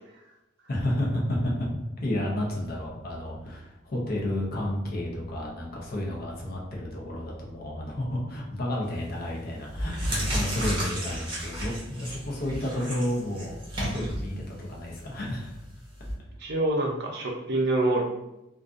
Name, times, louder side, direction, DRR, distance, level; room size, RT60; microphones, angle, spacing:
voice 1, 0.7-1.5 2.0-15.6, left 1 dB, 50° left, -2 dB, 0.6 m, -31 dB
sound 1, 8.9-9.2 9.6-16.1, equal, 25° right, 0.9 m, -33 dB
voice 2, 16.4-18.0, right 2 dB, 60° right, 0 dB, 0.5 m, -26 dB
2.5 x 2.3 x 2.4 m, 0.92 s
head